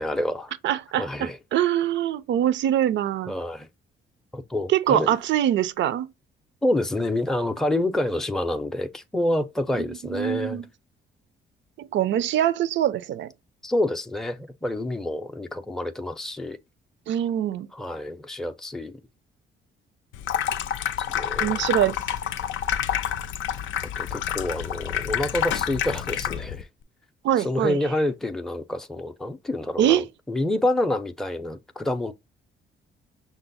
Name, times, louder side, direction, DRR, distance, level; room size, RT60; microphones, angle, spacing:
voice 1, 0.0-0.5 1.0-1.4 3.3-3.7 4.3-5.1 6.6-10.6 13.6-16.6 17.7-19.0 21.1-21.6 24.0-26.7 27.4-32.1, left 1 dB, ahead, 0.5 m, -27 dB
voice 2, 0.6-3.4 4.7-6.1 9.7-10.7 11.8-13.3 17.1-17.7 21.4-22.0 27.2-27.8 29.8-30.1, right 11 dB, 65° right, 0.4 m, -24 dB
Water tap faucet / Sink (filling or washing), 20.1-26.6, left 9 dB, 75° left, 0.4 m, -28 dB
5.8 x 2.0 x 4.0 m
cardioid pair, 90°, 20 cm